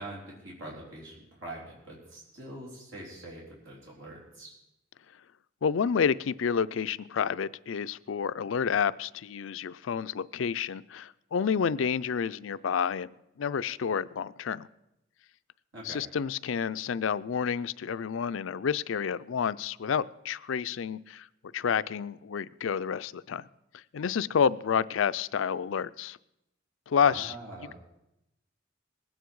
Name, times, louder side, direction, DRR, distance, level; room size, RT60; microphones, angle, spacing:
voice 1, 0.0-4.5 15.7-16.0 27.0-27.7, right 1 dB, 85° right, -4 dB, 4.0 m, -44 dB
voice 2, 5.6-13.1 13.4-14.7 15.8-21.3 21.5-23.5 23.7-26.2 26.9-27.3, left 7 dB, 85° left, 16 dB, 0.4 m, -29 dB
20.0 x 9.1 x 4.7 m, 0.86 s
head